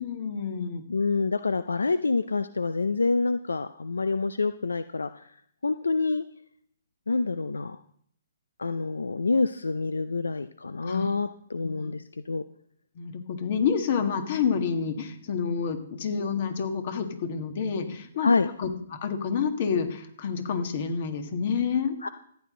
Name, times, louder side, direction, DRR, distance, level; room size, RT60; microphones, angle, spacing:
voice 1, 0.0-0.8 10.8-11.1 11.6-11.9 13.0-18.3 18.6-22.0, left 6 dB, 50° left, 6 dB, 1.8 m, -29 dB
voice 2, 0.9-5.3 5.6-6.2 7.1-7.8 8.6-12.4 18.2-18.5 22.0-22.1, left 3 dB, 85° left, 12 dB, 0.5 m, -27 dB
14.5 x 9.5 x 3.8 m, 0.65 s
hypercardioid pair, 135°, 0 cm